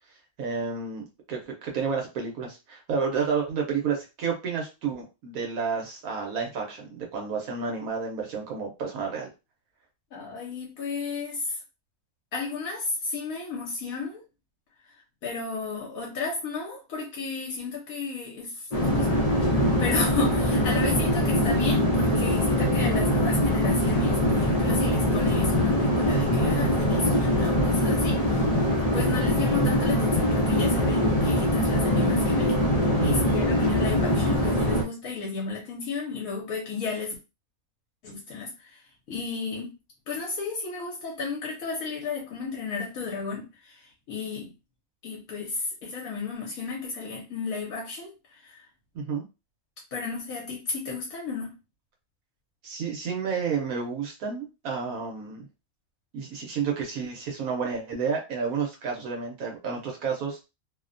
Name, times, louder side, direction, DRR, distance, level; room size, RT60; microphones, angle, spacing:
voice 1, 0.4-9.3 33.0-33.3 48.9-49.2 52.6-55.5 56.1-60.4, right 5 dB, 80° right, 1 dB, 1.1 m, -30 dB
voice 2, 10.1-11.6 12.3-14.2 15.2-28.5 28.9-32.5 32.8-37.2 38.0-38.8 39.1-39.7 40.1-44.5 45.0-48.6 49.9-51.5, left 4 dB, 75° left, -2 dB, 1.1 m, -33 dB
sound 1, 18.7-34.8, left 1 dB, 40° left, 0.5 m, -23 dB
2.7 x 2.1 x 2.5 m, 0.27 s
omnidirectional pair, 1.5 m